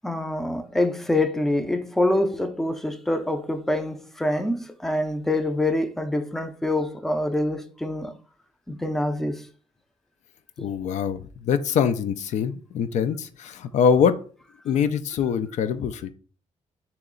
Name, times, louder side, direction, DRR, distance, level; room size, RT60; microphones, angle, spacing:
voice 1, 0.0-8.1 8.7-9.4, left 1 dB, 5° left, 0.4 m, -25 dB
voice 2, 10.6-11.2 11.4-14.1 14.7-16.1, left 7 dB, 70° left, 0.4 m, -23 dB
3.1 x 2.9 x 3.7 m
cardioid pair, 85°, 13 cm